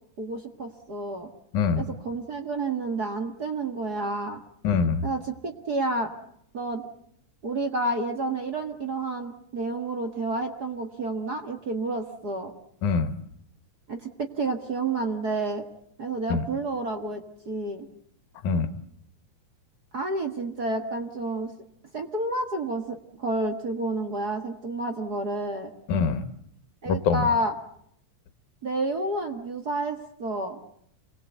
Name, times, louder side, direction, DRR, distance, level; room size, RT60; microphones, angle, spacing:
voice 1, 0.2-1.3 1.7-4.4 5.0-6.1 6.5-6.8 7.4-12.5 13.9-15.6 16.0-17.9 19.9-21.5 21.9-25.7 26.8-27.5 28.6-30.6, right 2 dB, 40° right, 5 dB, 1.8 m, -30 dB
voice 2, 4.6-5.0 12.8-13.1 16.3-16.4 18.4-18.7 25.9-26.2 26.9-27.2, left 5 dB, 80° left, 10 dB, 2.8 m, -24 dB
28.0 x 21.0 x 8.1 m, 0.70 s
omnidirectional pair, 3.5 m